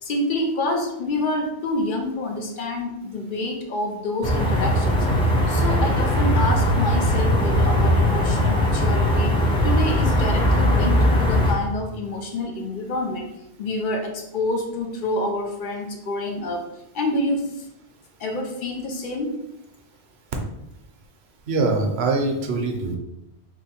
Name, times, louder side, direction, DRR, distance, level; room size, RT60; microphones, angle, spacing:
voice 1, 0.0-5.0 5.5-9.3 9.6-13.3 13.6-16.6 16.9-17.7 18.2-19.3, left 2 dB, 55° left, 3 dB, 0.7 m, -27 dB
sound 1, 4.2-11.5, left 1 dB, 5° left, 0.6 m, -19 dB
voice 2, 21.5-23.0, right 3 dB, 70° right, 3 dB, 0.9 m, -23 dB
3.0 x 2.2 x 4.1 m, 0.85 s
omnidirectional pair, 1.1 m